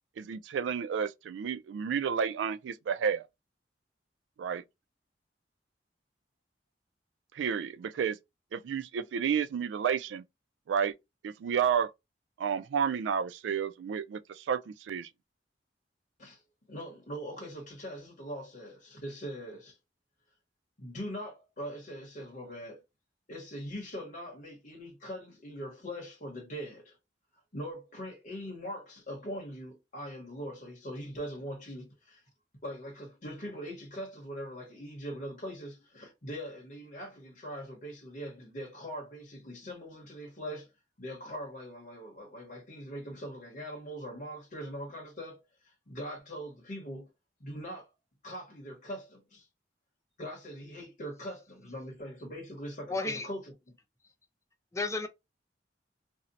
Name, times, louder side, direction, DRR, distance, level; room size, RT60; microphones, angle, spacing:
voice 1, 0.2-3.2 4.4-4.6 7.3-8.2 8.5-10.2 10.7-10.9 11.2-11.9 12.4-15.1, right 7 dB, 80° right, 0.3 m, -31 dB
voice 2, 16.7-19.8 20.8-22.8 23.3-27.0 27.5-32.2 32.6-40.7 41.0-45.4 45.6-47.1 47.4-47.9 48.2-49.5 50.2-53.7, equal, 45° left, 0.9 m, -41 dB
voice 3, 52.9-53.3 54.7-55.1, left 3 dB, 15° left, 0.5 m, -32 dB
2.6 x 2.1 x 3.9 m
head